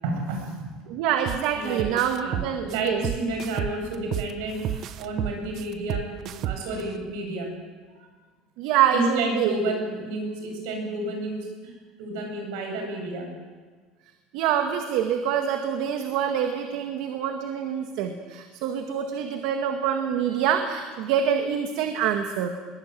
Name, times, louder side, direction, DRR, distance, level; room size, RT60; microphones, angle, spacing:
voice 1, 0.0-0.7 1.6-1.9 2.2-7.5 8.9-13.3, right 2 dB, 70° right, 3 dB, 8.0 m, -31 dB
voice 2, 0.9-3.0 8.6-9.8 14.3-22.5, right 8 dB, 55° right, 5 dB, 1.9 m, -26 dB
sound 1, 1.3-1.4 1.8-4.3 4.6-6.8, right 11 dB, 35° right, 0.9 m, -30 dB
22.5 x 21.0 x 9.2 m, 1.5 s
cardioid pair, 180°, 0 cm